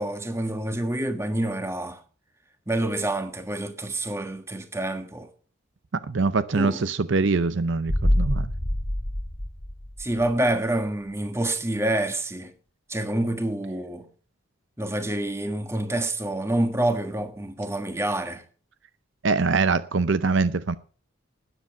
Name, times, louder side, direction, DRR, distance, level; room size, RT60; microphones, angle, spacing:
voice 1, 0.0-2.0 2.7-5.3 6.5-6.9 10.0-12.5 12.9-14.1 14.8-18.4, right 1 dB, 15° right, 1.4 m, -27 dB
voice 2, 6.1-8.5 19.2-20.8, right 4 dB, 60° right, 0.6 m, -23 dB
sound 1, 7.9-10.6 10.9-11.0, left 1 dB, 25° left, 1.8 m, -26 dB
13.0 x 10.0 x 5.7 m
head